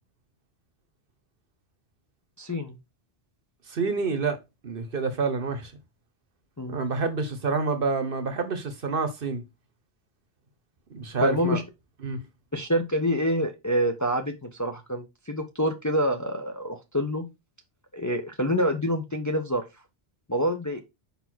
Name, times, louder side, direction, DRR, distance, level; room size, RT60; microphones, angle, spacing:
voice 1, 2.4-2.8 6.6-6.8 11.2-11.6 12.5-17.3 17.9-19.6 20.3-20.8, equal, 20° left, 0.7 m, -27 dB
voice 2, 3.7-4.4 4.6-5.7 6.7-9.4 10.9-11.6 12.0-12.2, right 4 dB, 55° right, 1.1 m, -28 dB
5.3 x 4.2 x 4.5 m
omnidirectional pair, 1.2 m